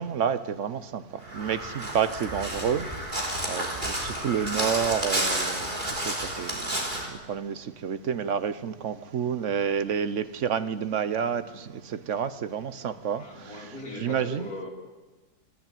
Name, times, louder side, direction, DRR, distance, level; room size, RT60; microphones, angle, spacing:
voice 1, 0.0-14.5, right 7 dB, 55° right, 1.0 m, -30 dB
Crow, 1.2-7.1, right 1 dB, 30° right, 3.6 m, -31 dB
voice 2, 13.2-14.7, left 1 dB, 60° left, 3.6 m, -38 dB
27.5 x 12.0 x 9.1 m
omnidirectional pair, 1.8 m